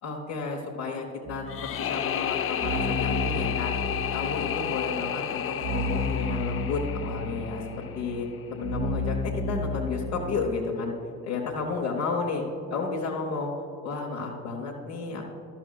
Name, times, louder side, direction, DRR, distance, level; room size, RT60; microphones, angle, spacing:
voice 1, 0.0-1.4 1.8-3.7 4.1-10.9 11.2-12.4 12.7-13.5 13.8-15.3, left 4 dB, 85° left, -4 dB, 1.0 m, -32 dB
sound 1, 1.2-10.4, left 1 dB, 85° right, 2.2 m, -33 dB
sound 2, 1.5-8.4, left 10 dB, 30° left, 0.4 m, -32 dB
12.0 x 12.0 x 2.3 m, 2.5 s
hypercardioid pair, 55°, 44 cm